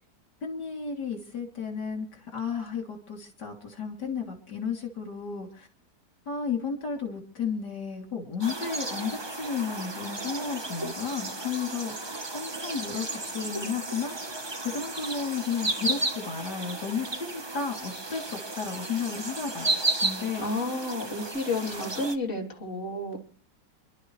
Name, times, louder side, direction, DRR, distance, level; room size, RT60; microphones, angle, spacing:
voice 1, 0.4-5.7 6.3-14.1 14.6-20.7 21.6-21.9, left 6 dB, 70° left, 2 dB, 3.8 m, -33 dB
sound 1, 8.4-22.2, right 2 dB, 20° right, 1.0 m, -33 dB
voice 2, 20.4-23.2, left 2 dB, 45° left, -1 dB, 3.7 m, -31 dB
28.5 x 12.5 x 3.3 m, 0.43 s
omnidirectional pair, 1.9 m